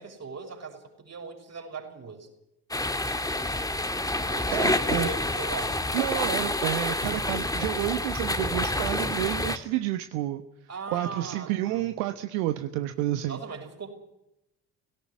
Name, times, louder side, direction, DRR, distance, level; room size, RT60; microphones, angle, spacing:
voice 1, 0.0-2.3 4.3-5.9 10.7-11.8 13.3-13.9, right 4 dB, 35° right, 4 dB, 6.2 m, -39 dB
sound 1, 2.7-9.6, left 1 dB, 10° left, 1.8 m, -28 dB
voice 2, 4.5-5.1 5.9-10.4 10.9-13.4, right 15 dB, 70° right, 9 dB, 1.2 m, -30 dB
17.5 x 17.5 x 9.9 m, 0.87 s
hypercardioid pair, 55°, 43 cm